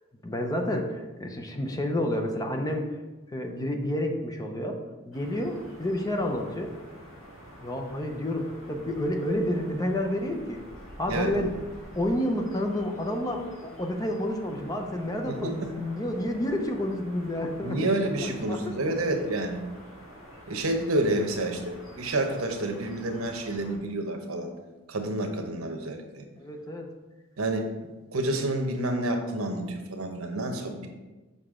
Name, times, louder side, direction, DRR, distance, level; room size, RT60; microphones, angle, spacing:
voice 1, 0.2-3.0 3.3-4.8 5.1-6.7 7.6-10.6 11.0-11.5 12.0-18.1 18.5-18.7 26.4-26.9, left 1 dB, 20° left, 3 dB, 0.6 m, -30 dB
sound 1, 5.1-23.8, equal, 65° left, 1.9 m, -47 dB
voice 2, 17.6-19.6 20.5-24.5 24.9-26.2 27.4-27.7 28.1-30.9, right 1 dB, 80° right, 5 dB, 0.9 m, -29 dB
6.8 x 5.3 x 3.7 m, 1.2 s
head